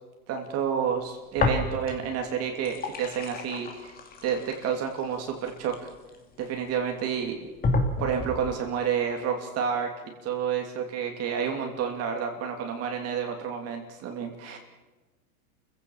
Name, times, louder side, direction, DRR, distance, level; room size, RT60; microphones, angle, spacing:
voice 1, 0.3-4.0 4.2-5.7 6.4-7.5 8.0-9.9 10.2-14.6, right 7 dB, 35° right, 3 dB, 2.8 m, -30 dB
sound 1, 1.4-2.1 2.5-6.4 7.0-7.1 7.6-8.5, left 3 dB, 20° left, 2.7 m, -30 dB
29.0 x 16.0 x 7.2 m, 1.2 s
supercardioid pair, 145°, 44 cm